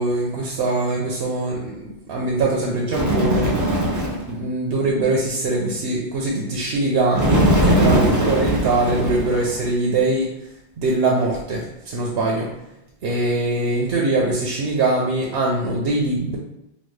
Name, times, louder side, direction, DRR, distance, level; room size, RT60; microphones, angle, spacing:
voice 1, 0.0-3.6 4.3-10.5 10.8-12.6 13.0-16.4, right 2 dB, 70° right, -2 dB, 0.8 m, -22 dB
Bird, 2.9-4.3 7.1-9.7, equal, 25° right, 0.4 m, -20 dB
3.9 x 2.0 x 3.1 m, 0.85 s
omnidirectional pair, 1.1 m